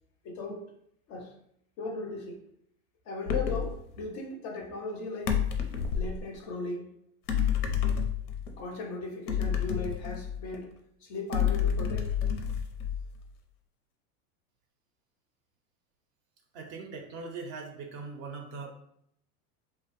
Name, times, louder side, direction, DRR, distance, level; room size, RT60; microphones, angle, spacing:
voice 1, 0.2-0.7 1.1-1.4 1.8-2.4 3.1-5.4 5.9-6.9 8.6-10.7 11.0-12.2, left 3 dB, 35° left, 3 dB, 0.4 m, -37 dB
sound 1, 3.3-3.7 5.3-6.2 7.3-8.5 9.3-10.6 11.3-13.2, left 8 dB, 90° left, 0.6 m, -29 dB
voice 2, 16.5-18.7, right 4 dB, 35° right, 3 dB, 0.4 m, -40 dB
2.6 x 2.0 x 2.9 m, 0.73 s
supercardioid pair, 120°, 44 cm